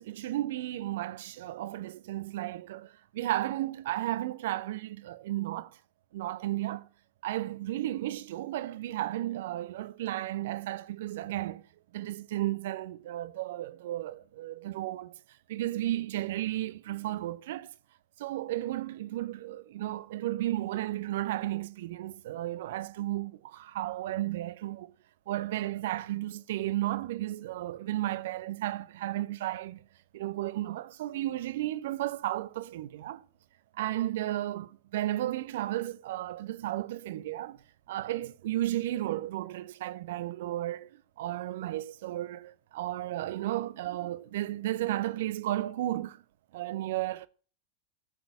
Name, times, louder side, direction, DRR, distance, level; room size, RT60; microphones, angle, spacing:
voice 1, 0.0-5.8 6.1-6.9 7.2-11.6 11.9-15.1 15.5-17.7 18.2-24.9 25.3-29.8 30.1-33.2 33.7-37.6 37.9-40.9 41.2-46.2 46.5-47.3, right 14 dB, 55° right, 0.7 m, -33 dB
13.5 x 6.1 x 7.7 m
figure-of-eight pair, 90°, 0 cm